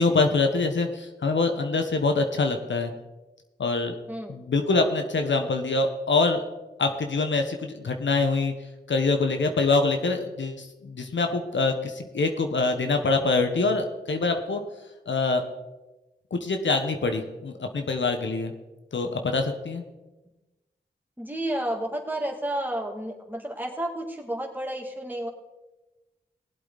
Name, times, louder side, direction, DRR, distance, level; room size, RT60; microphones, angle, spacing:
voice 1, 0.0-2.9 3.6-4.0 4.3-6.4 6.8-8.5 8.9-14.6 15.1-15.4 16.3-18.5 18.9-19.8, left 3 dB, 75° left, 5 dB, 1.3 m, -25 dB
voice 2, 21.2-25.3, right 1 dB, 10° right, 1 dB, 2.6 m, -31 dB
18.5 x 8.1 x 4.2 m, 1.1 s
cardioid pair, 40°, 19 cm